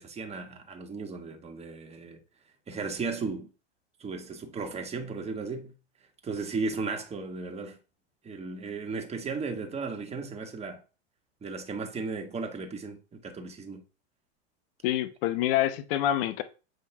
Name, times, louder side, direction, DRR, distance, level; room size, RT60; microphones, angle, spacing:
voice 1, 0.0-2.2 2.7-3.5 4.0-5.7 6.2-7.8 8.2-10.8 11.4-13.8, right 4 dB, 20° right, 1.6 m, -35 dB
voice 2, 14.8-16.4, left 12 dB, 55° left, 1.0 m, -26 dB
7.7 x 5.2 x 3.5 m
hypercardioid pair, 105°, 34 cm